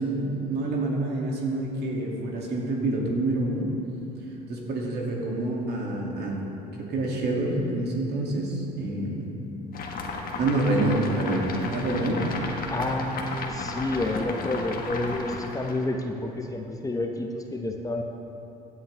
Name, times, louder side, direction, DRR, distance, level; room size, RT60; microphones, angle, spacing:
voice 1, 0.0-3.7 4.5-6.5 6.7-9.3 10.4-12.2, right 2 dB, 55° right, -2 dB, 2.5 m, -27 dB
sound 1, 9.7-15.9, left 3 dB, 45° left, 1.5 m, -34 dB
voice 2, 12.7-18.0, left 2 dB, 15° left, 2 dB, 1.1 m, -29 dB
16.0 x 9.4 x 3.5 m, 2.9 s
supercardioid pair, 75°, 20 cm